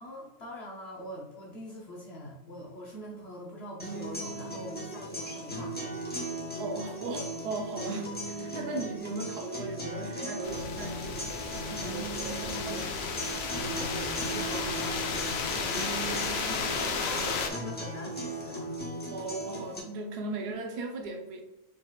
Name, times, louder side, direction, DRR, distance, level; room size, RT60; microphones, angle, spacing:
voice 1, 0.0-6.0 13.5-18.7, equal, 50° left, -4 dB, 0.9 m, -43 dB
sound 1, 3.8-19.8, right 1 dB, 10° left, 0.6 m, -37 dB
sound 2, 4.8-4.9 6.8-7.0 8.8-8.9 9.2-9.3 9.9-10.0 10.3-18.8, left 4 dB, 85° left, 1.7 m, -49 dB
voice 2, 6.6-13.0 19.1-21.4, right 2 dB, 80° right, 4 dB, 1.2 m, -37 dB
sound 3, 10.4-17.5, left 5 dB, 70° left, 0.6 m, -33 dB
4.7 x 4.3 x 2.3 m, 1.0 s
omnidirectional pair, 1.7 m